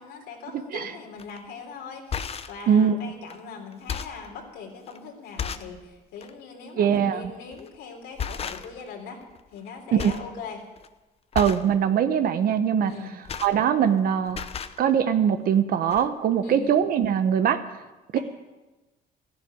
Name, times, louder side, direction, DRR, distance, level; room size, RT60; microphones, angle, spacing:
voice 1, 0.0-9.2 9.5-10.6 12.8-13.2 16.4-16.7, left 5 dB, 85° left, 1 dB, 3.6 m, -41 dB
voice 2, 0.5-0.9 2.7-3.0 6.8-7.2 9.9-10.1 11.3-12.9 13.4-14.4 14.8-17.6 18.1-18.2, right 8 dB, 60° right, 10 dB, 1.1 m, -22 dB
sound 1, 1.2-1.4 1.9-2.6 3.3-3.4 3.7-4.3 4.9-5.0 5.4-5.8 6.2-6.3 7.5-7.8 8.2-8.9 9.2-9.7 10.0-10.3 10.6-10.9 11.3-11.7 12.9-14.0 14.3-14.8 15.6-15.7 15.9-16.1, left 7 dB, 35° left, 0.9 m, -34 dB
14.5 x 11.0 x 9.1 m, 1.1 s
cardioid pair, 110°, 17 cm